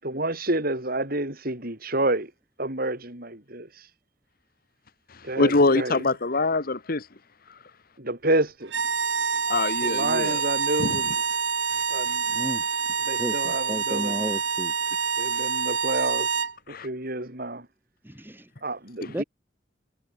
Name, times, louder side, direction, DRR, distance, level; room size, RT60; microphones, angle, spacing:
voice 1, 0.0-2.3 2.6-3.9 5.2-6.0 8.0-8.7 9.8-11.1 11.9-12.2 13.0-14.3 15.2-16.3 16.7-17.7 18.6-19.2, right 2 dB, 50° right, 6.6 m, -29 dB
voice 2, 5.4-7.0 9.5-10.4 10.8-11.0 16.7-16.9, left 3 dB, 50° left, 1.2 m, -23 dB
sound 1, 8.6-16.5, right 6 dB, 70° right, 1.3 m, -27 dB
voice 3, 12.3-12.7 13.1-14.7 18.0-18.5 19.1-19.2, equal, 10° right, 1.5 m, -33 dB
head